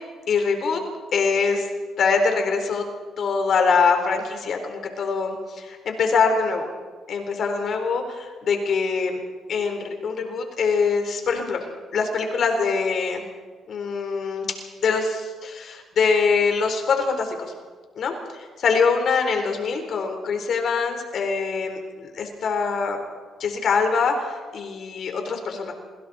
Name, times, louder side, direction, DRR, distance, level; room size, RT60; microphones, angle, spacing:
voice 1, 0.3-0.8 1.1-1.7 2.0-2.8 3.2-6.7 7.1-9.2 9.5-11.6 11.9-13.2 13.7-14.5 14.8-17.5 18.0-23.0 23.4-25.7, left 5 dB, 60° left, 4 dB, 4.0 m, -23 dB
26.5 x 23.0 x 4.3 m, 1.5 s
cardioid pair, 90°, 0 cm